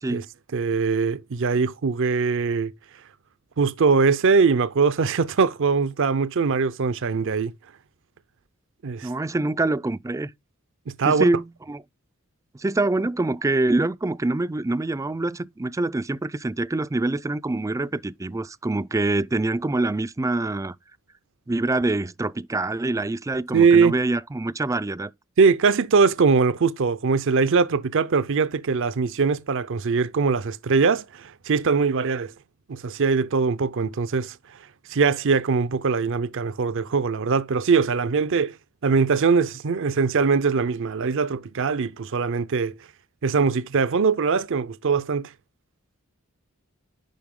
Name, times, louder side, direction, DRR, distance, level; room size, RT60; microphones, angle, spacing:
voice 1, 0.5-2.7 3.6-7.5 8.8-9.1 11.0-11.3 23.5-23.9 25.4-32.3 32.7-34.4 34.9-38.6 38.8-42.7 43.2-45.3, right 5 dB, 65° right, 0.6 m, -21 dB
voice 2, 9.0-10.3 11.1-11.8 12.5-20.7 21.5-25.1, right 2 dB, 15° right, 0.4 m, -25 dB
10.5 x 4.4 x 3.6 m
head